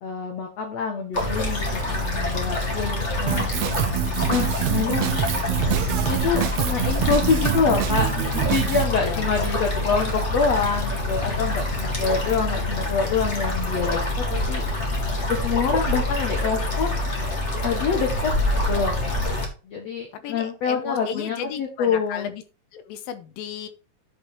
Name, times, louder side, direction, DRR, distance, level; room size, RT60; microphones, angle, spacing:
voice 1, 0.0-3.5 4.3-5.3 6.0-8.1 8.4-14.0 14.3-14.6 15.3-17.0 17.6-19.2 19.6-22.3, left 5 dB, 55° left, 3 dB, 2.0 m, -26 dB
sound 1, 1.1-19.5, left 1 dB, 25° left, 1.7 m, -26 dB
Drum kit, 3.3-8.8, right 12 dB, 80° right, 2.7 m, -26 dB
voice 2, 8.9-9.3 20.1-22.4 22.7-23.7, left 8 dB, 80° left, 11 dB, 2.4 m, -34 dB
10.5 x 5.4 x 4.4 m, 0.33 s
omnidirectional pair, 4.5 m